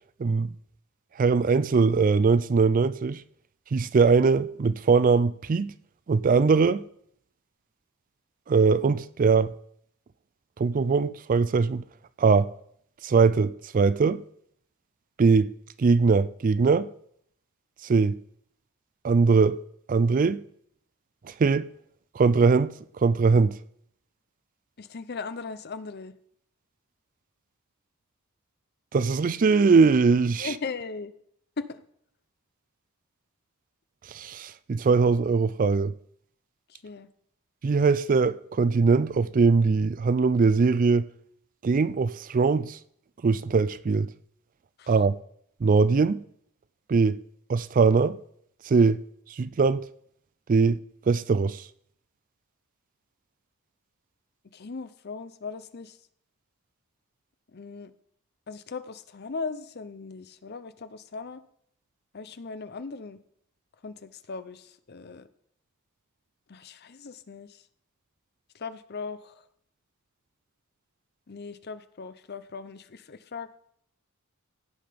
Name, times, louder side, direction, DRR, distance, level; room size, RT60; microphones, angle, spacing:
voice 1, 0.2-0.5 1.2-3.2 3.7-5.7 6.1-6.8 8.5-9.5 10.6-11.8 12.2-12.5 13.0-14.2 15.2-15.5 15.8-16.9 17.8-18.2 19.0-19.6 19.9-20.4 21.4-21.7 22.2-23.6 28.9-30.5 34.1-35.9 37.6-41.1 41.6-42.8 43.2-44.1 44.9-45.2 45.6-46.2 46.9-47.2 47.5-48.2 48.7-49.0 49.4-49.8 50.5-50.8 51.1-51.6, right 4 dB, 40° right, 0.3 m, -21 dB
voice 2, 24.8-26.1 30.4-31.1 31.6-31.8 36.7-37.1 44.8-44.9 54.5-56.0 57.5-57.9 58.5-61.4 62.1-63.2 63.8-65.3 66.5-67.6 68.5-69.4 71.3-73.5, left 4 dB, 45° left, 0.7 m, -38 dB
16.5 x 5.7 x 5.1 m
head